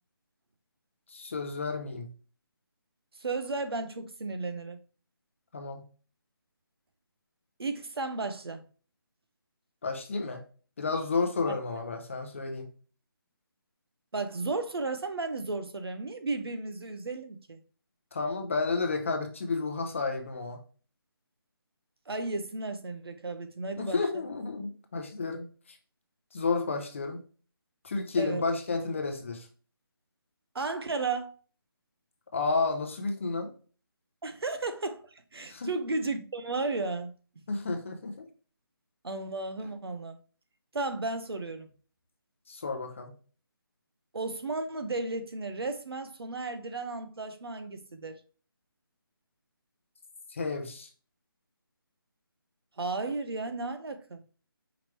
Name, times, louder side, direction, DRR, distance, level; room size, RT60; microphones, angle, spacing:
voice 1, 1.1-2.1 5.5-5.8 9.8-10.4 10.8-12.7 18.1-20.6 23.8-25.5 26.3-27.2 27.8-29.5 32.3-33.5 35.5-35.7 37.5-38.3 42.5-43.1 50.3-50.9, left 4 dB, 30° left, 0.6 m, -31 dB
voice 2, 3.1-4.8 7.6-8.6 14.1-17.6 22.1-24.2 28.2-28.4 30.5-31.3 34.2-37.1 39.0-40.2 40.7-41.7 44.1-48.2 52.8-54.2, right 3 dB, 85° right, 0.9 m, -34 dB
4.9 x 3.2 x 3.1 m
hypercardioid pair, 170°, 13 cm